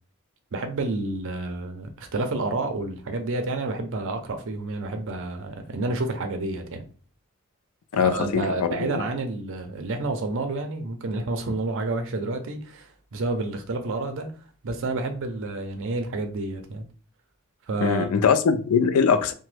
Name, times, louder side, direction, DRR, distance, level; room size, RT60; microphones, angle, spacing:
voice 1, 0.5-6.8 8.0-14.3 14.6-16.8 17.7-18.1, right 2 dB, 60° right, 0.5 m, -29 dB
voice 2, 7.9-9.0 17.8-19.3, left 6 dB, 75° left, 0.4 m, -22 dB
2.9 x 2.1 x 3.2 m
head